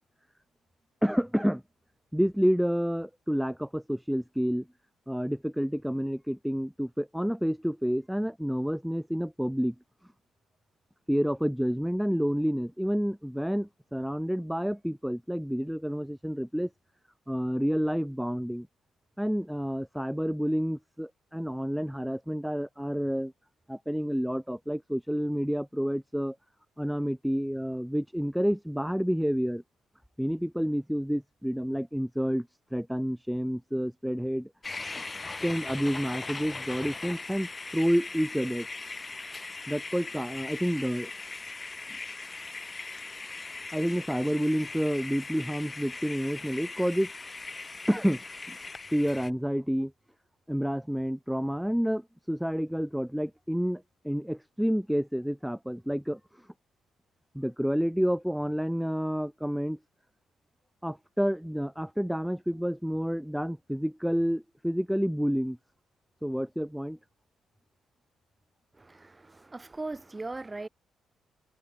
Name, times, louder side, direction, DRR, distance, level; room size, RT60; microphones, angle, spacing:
voice 1, 1.0-1.6 2.1-4.7 5.1-9.7 11.1-16.7 17.3-18.7 19.2-23.3 23.7-26.4 26.8-29.6 30.2-34.5 35.4-38.7 39.7-41.1 43.7-47.1 47.9-48.6 48.9-49.9 50.5-56.2 57.3-59.8 60.8-65.6 66.2-67.0, equal, ahead, 0.8 m, -29 dB
sound 1, 34.6-49.3, left 3 dB, 25° left, 3.3 m, -40 dB
voice 2, 68.7-70.7, right 2 dB, 20° right, 5.7 m, -39 dB
cardioid pair, 90°, 0 cm